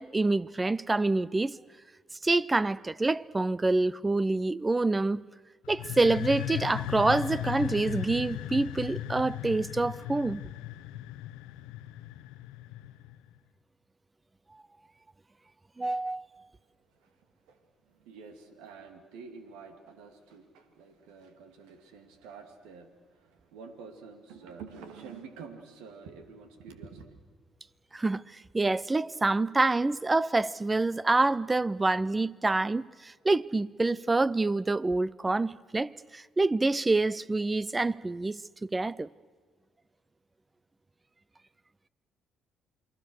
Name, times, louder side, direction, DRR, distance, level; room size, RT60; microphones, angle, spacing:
voice 1, 0.0-1.6 2.2-5.2 5.7-10.4 15.8-16.5 27.9-39.1, right 2 dB, 20° right, 0.6 m, -27 dB
sound 1, 5.6-13.3, left 14 dB, 80° left, 0.9 m, -37 dB
voice 2, 16.9-27.1, right 5 dB, 80° right, 2.4 m, -48 dB
28.5 x 21.5 x 6.4 m
hypercardioid pair, 55°, 0 cm